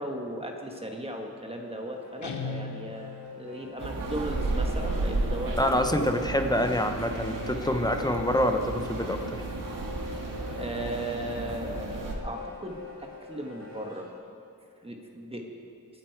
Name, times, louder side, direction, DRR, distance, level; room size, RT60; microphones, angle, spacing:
voice 1, 0.0-5.6 10.6-14.1 14.8-15.5, right 1 dB, 15° right, 1 dB, 1.3 m, -37 dB
sound 1, 1.5-14.1, left 6 dB, 50° right, 3.1 m, -44 dB
Guitar, 2.2-3.5, left 4 dB, 55° left, 1.2 m, -37 dB
sound 2, 3.8-12.1, right 3 dB, 70° right, 1.7 m, -33 dB
voice 2, 5.6-9.4, left 1 dB, 10° left, 5 dB, 0.8 m, -26 dB
22.5 x 9.4 x 4.6 m, 2.9 s
wide cardioid pair, 155°, 34 cm